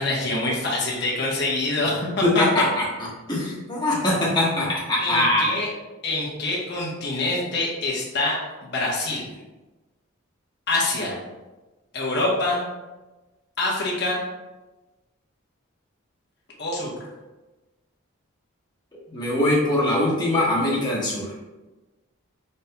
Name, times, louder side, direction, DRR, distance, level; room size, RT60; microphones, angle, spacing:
voice 1, 0.0-2.4 5.0-5.7 6.0-9.3 10.7-11.2 11.9-12.6 13.6-14.2 16.6-16.9, left 2 dB, 50° left, -4 dB, 1.1 m, -25 dB
voice 2, 2.2-2.8 3.3-5.5 19.1-21.3, left 1 dB, 20° left, -6 dB, 1.2 m, -22 dB
5.5 x 4.2 x 2.2 m, 1.1 s
head